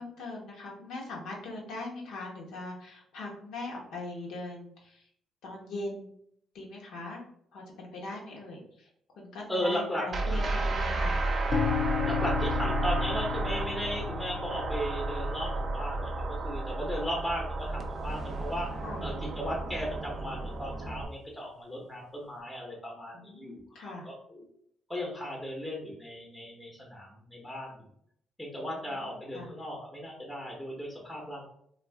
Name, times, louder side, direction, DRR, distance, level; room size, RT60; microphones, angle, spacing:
voice 1, 0.0-5.1 5.4-6.1 6.5-7.2 7.5-8.9 9.2-11.2 18.8-19.1 23.1-24.1 28.6-29.5, left 2 dB, 80° left, -2 dB, 0.9 m, -41 dB
voice 2, 9.5-10.4 12.0-24.5 24.9-27.9 28.4-31.5, equal, 5° left, -2 dB, 0.7 m, -36 dB
sound 1, 10.1-21.0, right 2 dB, 45° right, 0.4 m, -32 dB
sound 2, 11.5-19.4, left 8 dB, 45° left, 0.5 m, -36 dB
2.4 x 2.3 x 3.3 m, 0.69 s
cardioid pair, 90°, 0 cm